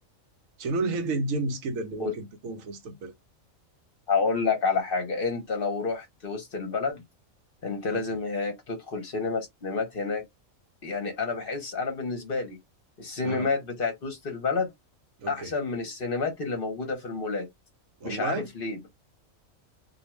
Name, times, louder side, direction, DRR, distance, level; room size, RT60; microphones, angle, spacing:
voice 1, 0.6-3.1 7.9-8.0 13.2-13.5 15.2-15.5 18.0-18.5, right 3 dB, 80° right, 1.0 m, -31 dB
voice 2, 4.1-7.0 7.6-10.2 10.8-12.6 13.0-14.7 15.3-17.5 18.0-18.9, left 4 dB, 50° left, 0.8 m, -29 dB
2.5 x 2.2 x 2.9 m
omnidirectional pair, 1.4 m